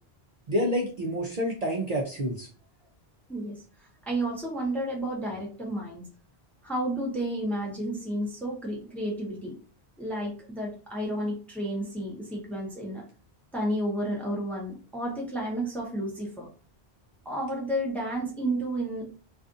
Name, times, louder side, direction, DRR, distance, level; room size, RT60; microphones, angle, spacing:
voice 1, 0.5-2.5, equal, 50° right, -2 dB, 0.5 m, -28 dB
voice 2, 4.1-6.0 6.6-9.6 10.0-13.0 13.5-16.5 17.2-19.0, right 1 dB, ahead, -2 dB, 0.6 m, -31 dB
2.5 x 2.4 x 2.5 m, 0.37 s
omnidirectional pair, 1.0 m